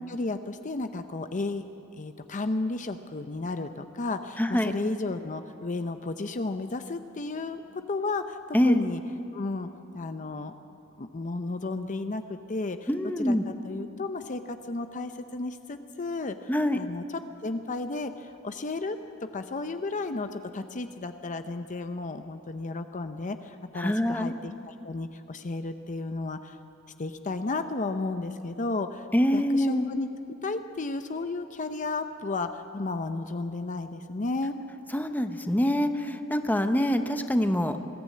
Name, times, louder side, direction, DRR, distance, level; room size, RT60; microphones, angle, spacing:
voice 1, 0.0-1.6 1.9-9.0 9.3-10.5 11.0-12.9 13.2-17.0 17.4-26.6 27.0-29.1 29.3-30.1 30.4-34.5, left 3 dB, 35° left, 8 dB, 0.7 m, -33 dB
voice 2, 4.4-4.7 8.5-8.8 12.9-13.4 16.5-16.8 23.8-24.3 29.1-29.9 34.9-37.8, left 1 dB, 10° left, 7 dB, 0.8 m, -25 dB
21.5 x 14.0 x 8.5 m, 2.8 s
head